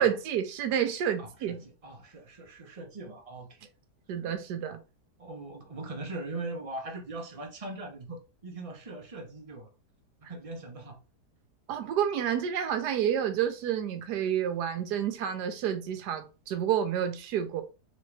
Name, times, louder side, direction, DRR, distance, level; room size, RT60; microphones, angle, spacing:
voice 1, 0.0-1.6 4.1-4.8 11.7-17.6, right 9 dB, 80° right, 1.3 m, -29 dB
voice 2, 1.2-3.7 5.2-9.7 10.2-11.0, right 2 dB, 30° right, 0.7 m, -41 dB
4.0 x 3.1 x 3.3 m
omnidirectional pair, 1.8 m